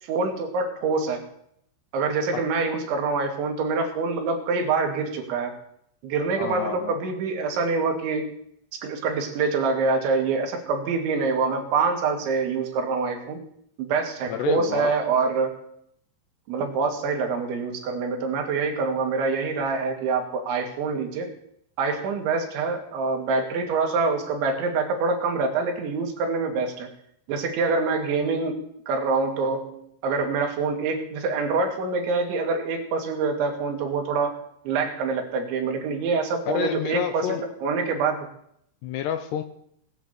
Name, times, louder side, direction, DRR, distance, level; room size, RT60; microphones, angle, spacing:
voice 1, 0.0-1.2 1.9-5.6 6.0-8.3 8.7-13.4 13.8-15.5 16.5-21.3 21.8-26.9 27.3-28.6 28.9-38.3, right 4 dB, 75° right, 3 dB, 4.6 m, -25 dB
voice 2, 6.4-7.0 14.3-15.0 36.5-37.4 38.8-39.4, left 9 dB, 75° left, 10 dB, 2.6 m, -29 dB
19.0 x 8.9 x 8.4 m, 0.71 s
omnidirectional pair, 5.5 m